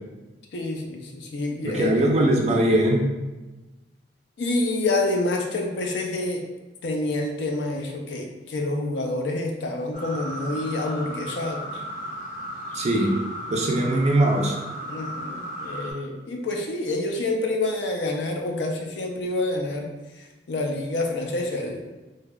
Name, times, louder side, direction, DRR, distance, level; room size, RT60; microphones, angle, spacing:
voice 1, 0.5-2.0 4.4-6.4 6.8-11.7 13.7-13.9 14.8-19.9 20.5-21.8, left 2 dB, 80° left, 2 dB, 0.4 m, -27 dB
voice 2, 1.6-3.1 12.7-13.2 13.5-14.6, right 1 dB, 40° right, 1 dB, 0.4 m, -21 dB
sound 1, 9.9-15.9, equal, 45° left, 0.7 m, -35 dB
3.2 x 2.0 x 2.2 m, 1.1 s
head